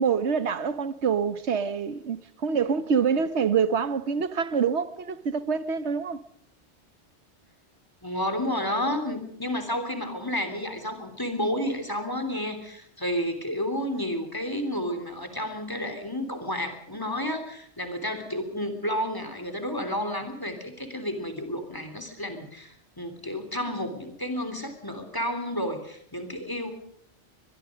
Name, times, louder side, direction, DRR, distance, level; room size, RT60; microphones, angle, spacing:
voice 1, 0.0-6.2, right 6 dB, 70° right, 1.4 m, -26 dB
voice 2, 8.0-26.7, left 1 dB, 20° left, 3.4 m, -31 dB
23.0 x 22.5 x 5.2 m
omnidirectional pair, 1.2 m